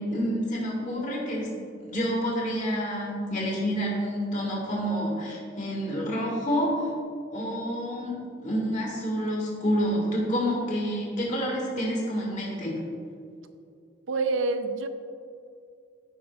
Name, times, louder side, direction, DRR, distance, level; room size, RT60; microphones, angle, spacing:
voice 1, 0.0-1.5 1.8-6.9 7.3-8.2 8.4-12.7, equal, 40° left, -3 dB, 1.7 m, -28 dB
voice 2, 14.1-14.9, right 3 dB, 80° right, 9 dB, 0.5 m, -26 dB
14.5 x 5.4 x 2.4 m, 2.4 s
head